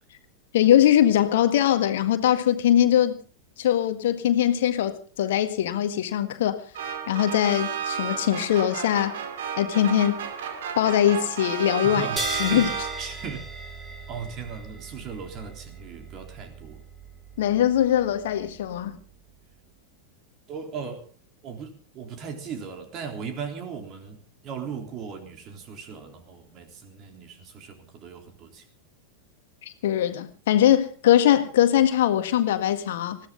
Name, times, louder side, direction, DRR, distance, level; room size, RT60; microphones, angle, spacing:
voice 1, 0.5-3.2 3.6-6.6 7.1-9.2 9.6-10.2 10.8-12.0 12.4-12.7 17.4-19.0 29.6-33.2, left 11 dB, 55° left, 1.6 m, -21 dB
sound 1, 6.7-13.3, right 7 dB, 55° right, 2.5 m, -32 dB
voice 2, 11.8-12.7 13.0-13.5 14.1-16.8 20.5-21.1 21.4-28.6, right 6 dB, 35° right, 3.6 m, -37 dB
sound 2, 12.2-19.1, right 2 dB, 20° right, 4.0 m, -38 dB
20.5 x 15.5 x 3.9 m
figure-of-eight pair, 90°, 0 cm